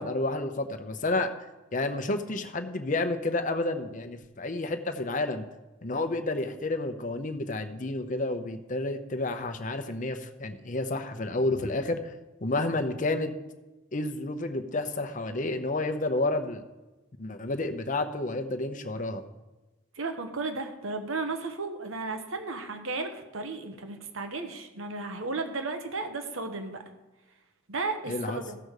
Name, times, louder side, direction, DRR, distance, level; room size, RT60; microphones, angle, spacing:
voice 1, 0.0-1.3 1.7-5.4 5.8-12.1 12.4-13.3 13.9-16.6 17.2-19.2 28.1-28.4, left 2 dB, 40° left, 6 dB, 0.8 m, -30 dB
voice 2, 19.9-26.8 27.7-28.6, right 3 dB, 80° right, 7 dB, 1.2 m, -34 dB
15.0 x 5.2 x 6.5 m, 1.1 s
head